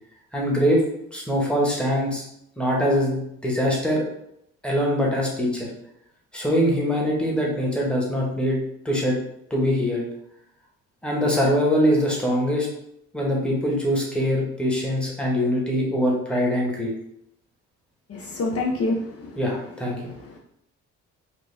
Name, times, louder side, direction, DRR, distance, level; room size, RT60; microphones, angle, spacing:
voice 1, 0.3-0.8 1.1-2.2 2.6-4.0 4.6-5.7 6.3-8.6 8.8-9.2 9.5-10.0 11.0-12.7 13.1-16.9 19.4-20.1, equal, 5° left, -3 dB, 1.1 m, -23 dB
voice 2, 18.1-19.4 20.1-20.4, left 2 dB, 50° left, -1 dB, 0.6 m, -27 dB
3.7 x 2.3 x 3.3 m, 0.76 s
cardioid pair, 90°, 30 cm